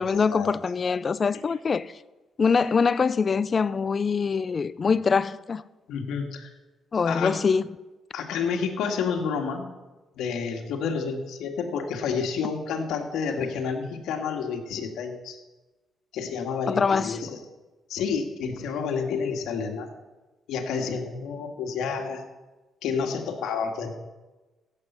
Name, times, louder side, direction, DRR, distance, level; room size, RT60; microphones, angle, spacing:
voice 1, 0.0-1.9 2.4-5.6 6.9-7.7 16.7-17.2, left 5 dB, 40° left, 0.5 m, -24 dB
voice 2, 5.9-6.5 7.1-7.4 8.1-9.7 10.2-15.4 16.1-17.4 17.9-19.9 20.5-22.2 22.8-23.9, left 6 dB, 85° left, 1.9 m, -29 dB
16.0 x 8.1 x 5.7 m
cardioid pair, 90°, 0 cm